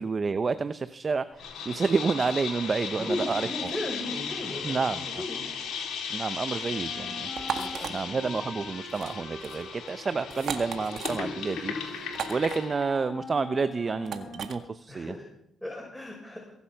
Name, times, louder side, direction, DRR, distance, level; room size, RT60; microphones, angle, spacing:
voice 1, 0.0-3.4 4.6-5.2 6.1-7.3 7.9-15.1, right 4 dB, 45° right, 12 dB, 0.8 m, -29 dB
sound 1, 1.4-12.9, left 6 dB, 75° left, 3.6 m, -36 dB
voice 2, 2.9-5.5 7.5-8.4 10.1-10.2 14.9-15.3 15.6-16.5, left 1 dB, 10° left, -3 dB, 6.3 m, -36 dB
Wind instrument woodwind instrument, 6.7-14.8, left 2 dB, 40° left, 3.8 m, -44 dB
sound 2, 7.4-7.9 8.9-9.1 9.4-9.6 10.3-11.2 12.1-12.6 14.0-14.6, right 7 dB, 70° right, 1.8 m, -35 dB
23.0 x 8.2 x 5.8 m, 0.75 s
supercardioid pair, 50°, 0 cm